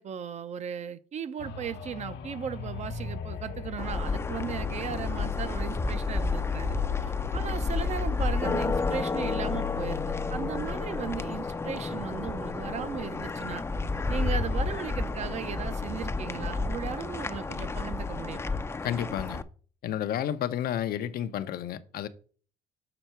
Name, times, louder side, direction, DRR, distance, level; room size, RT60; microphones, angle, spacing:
voice 1, 0.0-6.7 7.0-13.6 14.1-18.6, right 8 dB, 45° right, 0.5 m, -36 dB
sound 1, 1.4-15.0 15.5-15.6, left 8 dB, 80° left, 1.0 m, -37 dB
sound 2, 3.8-19.4, left 3 dB, 15° left, 0.4 m, -31 dB
voice 2, 18.8-19.4 19.8-22.1, left 10 dB, 60° left, 0.6 m, -31 dB
6.9 x 4.4 x 4.4 m
cardioid pair, 110°, 17 cm